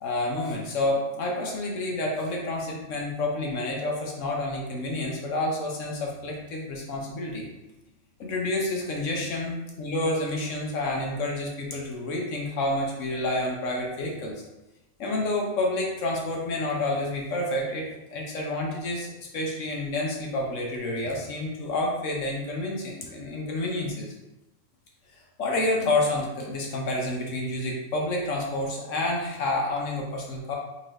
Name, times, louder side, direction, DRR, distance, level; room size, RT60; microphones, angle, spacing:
voice 1, 0.0-7.5 8.2-14.3 15.0-24.1 25.4-30.6, left 2 dB, 65° left, -1 dB, 1.0 m, -29 dB
4.0 x 2.7 x 3.1 m, 0.98 s
omnidirectional pair, 1.5 m